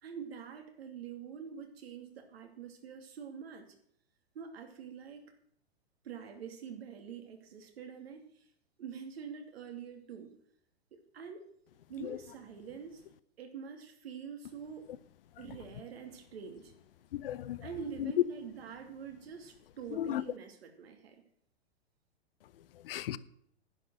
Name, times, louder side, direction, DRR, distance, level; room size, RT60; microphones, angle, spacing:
voice 1, 0.0-3.7 4.3-5.3 6.0-8.4 8.8-10.3 10.9-11.5 11.9-13.0 13.4-14.9 15.4-16.7 17.6-21.2, right 7 dB, 65° right, 2.7 m, -45 dB
voice 2, 17.1-17.7 18.0-18.1 19.9-20.2 22.8-23.2, left 12 dB, 60° left, 0.7 m, -36 dB
10.5 x 10.0 x 6.3 m
hypercardioid pair, 115°, 33 cm